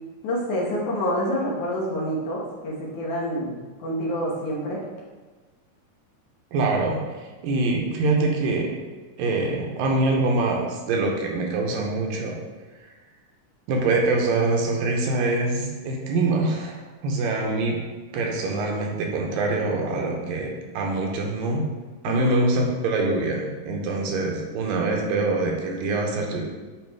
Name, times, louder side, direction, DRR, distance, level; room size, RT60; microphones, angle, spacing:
voice 1, 0.2-4.8 22.1-22.3, equal, 70° left, -5 dB, 2.4 m, -27 dB
voice 2, 6.5-8.7 9.2-12.4 13.7-17.8 18.1-21.7 22.0-26.4, right 2 dB, 85° right, 0 dB, 2.5 m, -24 dB
8.5 x 3.2 x 3.5 m, 1.3 s
omnidirectional pair, 3.9 m